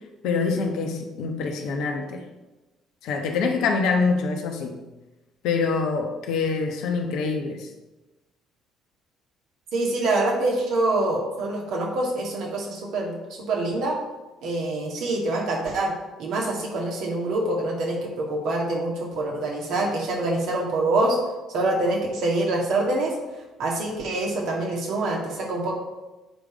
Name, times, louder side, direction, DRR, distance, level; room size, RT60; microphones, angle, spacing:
voice 1, 0.2-2.2 3.0-4.8 5.4-7.7, left 4 dB, 60° left, 3 dB, 1.1 m, -25 dB
voice 2, 9.7-14.0 14.4-15.9 16.2-21.2 21.5-23.2 23.6-25.8, right 2 dB, 55° right, -1 dB, 1.9 m, -25 dB
7.8 x 5.0 x 4.9 m, 1.1 s
figure-of-eight pair, 50°, 0 cm